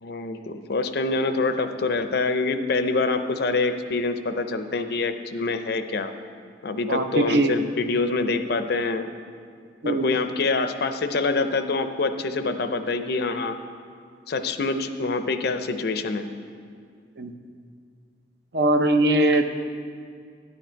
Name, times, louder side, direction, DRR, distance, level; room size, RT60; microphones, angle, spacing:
voice 1, 0.0-6.1 6.6-9.1 9.8-13.6 14.3-16.3, left 3 dB, 60° left, 9 dB, 0.5 m, -25 dB
voice 2, 6.9-7.5 9.8-10.2 17.2-17.3 18.5-19.4, right 1 dB, 60° right, 7 dB, 0.7 m, -21 dB
10.0 x 9.7 x 4.5 m, 2.1 s
head